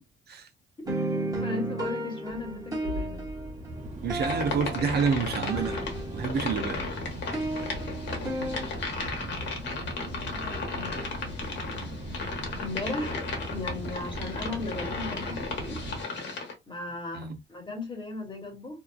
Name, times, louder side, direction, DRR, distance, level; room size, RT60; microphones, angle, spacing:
sound 1, 0.9-6.6 6.9-8.7, right 1 dB, 20° right, 1.1 m, -34 dB
voice 1, 1.4-3.3 8.1-8.6 10.3-11.1 12.6-13.2 13.5-15.8 16.7-18.8, left 3 dB, 25° left, 1.2 m, -37 dB
sound 2, 2.3-16.0, right 1 dB, 40° right, 1.1 m, -38 dB
voice 2, 4.0-5.8 6.1-6.9 17.1-17.4, right 6 dB, 55° right, 0.6 m, -28 dB
sound 3, 4.2-16.5, left 4 dB, 65° left, 1.1 m, -35 dB
2.7 x 2.2 x 2.4 m
cardioid pair, 90°, 20 cm